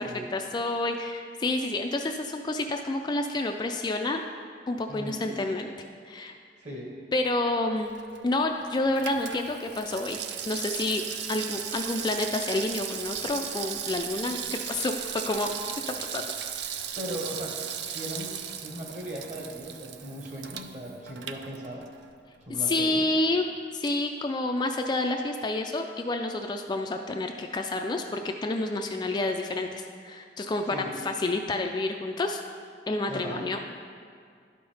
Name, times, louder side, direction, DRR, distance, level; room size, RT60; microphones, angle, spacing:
voice 1, 0.3-4.3 4.7-5.7 6.0-6.4 7.1-7.9 8.2-10.2 10.4-15.5 16.0-16.3 16.6-16.7 22.6-23.4 23.7-32.4 32.9-33.6, left 2 dB, 25° left, 4 dB, 0.3 m, -29 dB
voice 2, 4.9-5.3 6.6-6.9 16.9-17.6 17.8-21.8 22.4-23.1 30.7-30.9 33.1-33.5, equal, 40° right, -2 dB, 1.6 m, -38 dB
Water tap faucet / Sink (filling or washing), 7.8-22.1 22.4-22.5, right 8 dB, 65° right, 0.4 m, -37 dB
12.0 x 5.4 x 3.4 m, 2.2 s
head